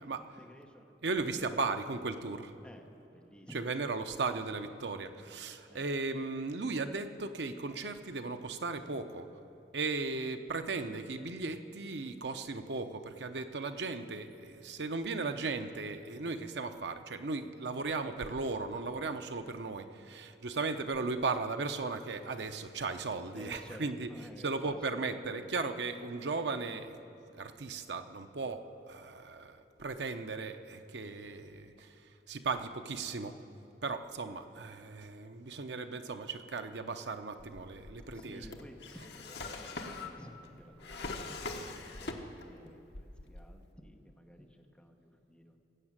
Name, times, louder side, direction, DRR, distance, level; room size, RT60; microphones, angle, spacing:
voice 1, 0.0-1.6 2.6-3.9 5.7-5.9 23.3-25.6 38.1-45.6, equal, 5° left, 2 dB, 1.0 m, -54 dB
voice 2, 1.0-2.5 3.5-9.3 9.7-24.1 24.4-27.0 27.3-31.9 32.3-33.3 33.8-38.5, right 3 dB, 75° right, 8 dB, 0.7 m, -36 dB
Drawer open or close, 37.4-42.6 42.9-43.7, left 3 dB, 70° left, 1.1 m, -43 dB
17.5 x 8.0 x 7.4 m, 2.9 s
head